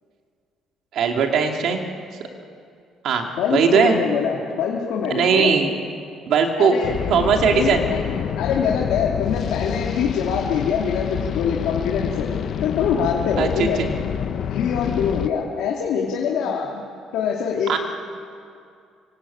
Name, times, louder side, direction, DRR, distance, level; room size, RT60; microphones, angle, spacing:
voice 1, 0.9-1.8 3.0-4.0 5.1-5.7 6.3-6.7 7.1-7.8 13.4-13.9 17.7-17.8, right 6 dB, 55° right, 2 dB, 2.9 m, -19 dB
voice 2, 3.4-5.5 6.6-7.0 7.5-8.0 8.3-12.3 12.6-13.8 14.5-16.7 17.1-17.8, left 7 dB, 80° left, -2 dB, 2.8 m, -24 dB
sound 1, 6.8-15.3, left 8 dB, 45° left, 0.9 m, -27 dB
27.0 x 24.5 x 8.8 m, 2.4 s
cardioid pair, 175°, 0 cm